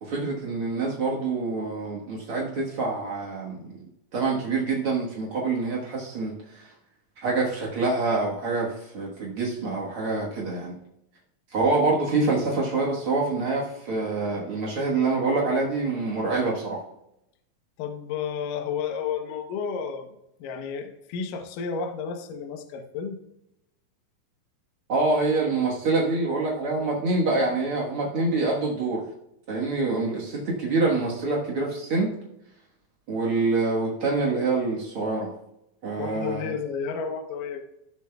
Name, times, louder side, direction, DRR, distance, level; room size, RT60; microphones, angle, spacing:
voice 1, 0.0-3.7 4.1-6.7 7.2-10.8 11.5-16.8 24.9-29.0 29.5-32.1 33.1-35.3 35.8-36.5, right 3 dB, 70° right, -3 dB, 1.3 m, -26 dB
voice 2, 17.8-20.1 20.4-23.2 36.0-37.7, left 6 dB, 70° left, 5 dB, 2.3 m, -32 dB
17.0 x 6.9 x 2.3 m, 0.81 s
omnidirectional pair, 4.6 m